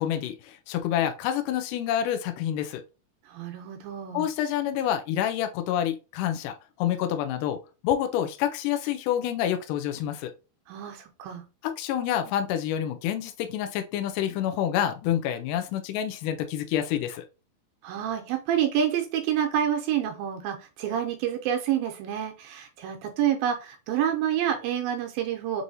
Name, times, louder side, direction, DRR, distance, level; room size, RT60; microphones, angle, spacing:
voice 1, 0.0-2.8 4.1-7.6 7.8-10.3 11.6-17.2, left 10 dB, 90° left, 1.8 m, -28 dB
voice 2, 3.3-4.3 10.7-11.4 17.8-25.6, right 9 dB, 80° right, 2.2 m, -28 dB
6.1 x 2.6 x 2.7 m
omnidirectional pair, 4.3 m